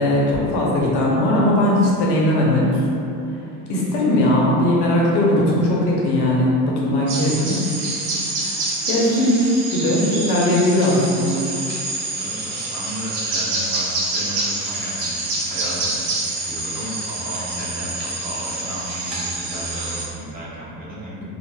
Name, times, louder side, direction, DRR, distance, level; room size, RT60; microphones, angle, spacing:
voice 1, 0.0-2.8 3.7-7.6 8.4-9.4 9.7-11.4, left 1 dB, 55° left, -4 dB, 0.8 m, -19 dB
sound 1, 7.1-20.1, right 2 dB, 70° right, 0.8 m, -27 dB
voice 2, 12.1-21.2, equal, 20° right, -9 dB, 0.9 m, -34 dB
3.1 x 2.0 x 2.2 m, 2.7 s
hypercardioid pair, 75°, 49 cm